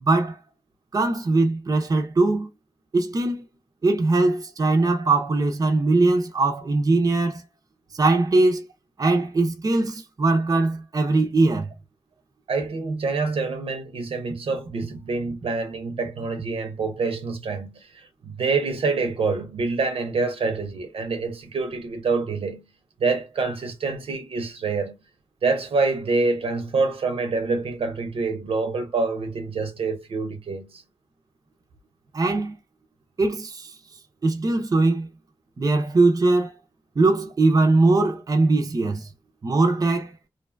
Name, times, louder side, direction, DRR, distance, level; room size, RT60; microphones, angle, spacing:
voice 1, 0.0-0.4 0.9-2.5 2.9-3.5 3.8-7.4 7.9-8.6 9.0-11.7 32.1-32.6 33.2-33.8 34.2-35.1 35.6-36.5 37.0-39.1 39.4-40.1, right 3 dB, 40° right, 0.5 m, -21 dB
voice 2, 12.5-22.7 23.0-25.0 25.4-30.8, right 4 dB, 75° right, 0.6 m, -26 dB
2.6 x 2.2 x 2.4 m
wide cardioid pair, 115°, 10 cm